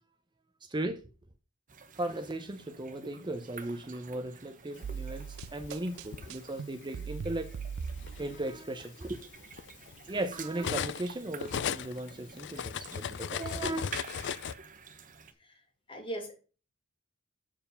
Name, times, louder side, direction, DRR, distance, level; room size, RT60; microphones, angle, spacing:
voice 1, 0.6-1.0 2.0-7.5 8.2-9.3 10.1-13.9, right 1 dB, 20° right, 0.6 m, -37 dB
sound 1, 1.7-15.3, right 6 dB, 40° right, 0.9 m, -50 dB
sound 2, 4.8-8.5, right 6 dB, 80° right, 0.5 m, -40 dB
Cutlery silverware, 5.0-6.3 7.3-7.4 7.9-11.1 11.4-14.5, left 8 dB, 60° left, 0.4 m, -37 dB
voice 2, 15.9-16.4, right 1 dB, 25° left, 2.1 m, -39 dB
7.5 x 4.5 x 6.8 m
head